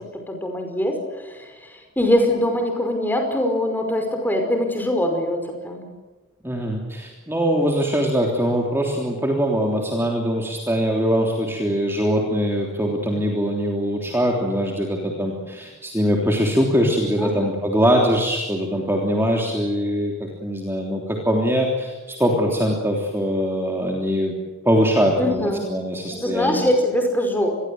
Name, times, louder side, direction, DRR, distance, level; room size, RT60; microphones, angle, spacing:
voice 1, 0.0-5.9 17.2-17.5 25.2-25.6 26.1-27.6, left 1 dB, 10° left, 4 dB, 5.3 m, -23 dB
voice 2, 6.4-24.3 24.6-26.7, equal, 10° right, 0 dB, 3.3 m, -22 dB
27.5 x 21.5 x 7.9 m, 1.2 s
head